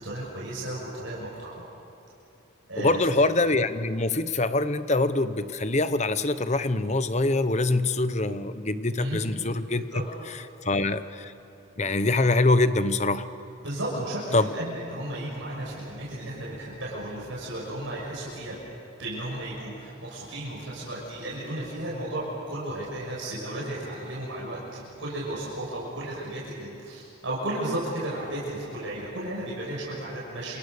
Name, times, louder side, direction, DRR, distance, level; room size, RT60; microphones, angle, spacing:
voice 1, 0.0-1.7 2.7-3.1 9.0-9.2 9.9-10.0 13.6-18.6 19.0-30.6, right 1 dB, 70° right, -5 dB, 6.5 m, -34 dB
voice 2, 2.8-9.8 10.6-11.3 11.8-13.2 14.3-14.5, left 2 dB, 35° left, 12 dB, 1.0 m, -24 dB
28.0 x 28.0 x 6.8 m, 2.9 s
head